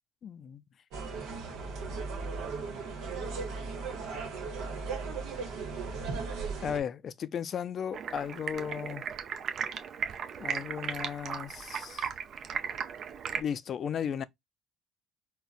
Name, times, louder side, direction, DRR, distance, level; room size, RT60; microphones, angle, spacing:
voice 1, 0.2-0.6 3.2-3.3 6.6-9.0 10.4-12.1 13.3-14.2, left 8 dB, 50° left, 0.3 m, -35 dB
sound 1, 0.9-6.8, right 4 dB, 80° right, 1.0 m, -37 dB
Stream, 7.9-13.4, right 7 dB, 55° right, 0.5 m, -36 dB
3.8 x 2.1 x 2.4 m
supercardioid pair, 90°, 0 cm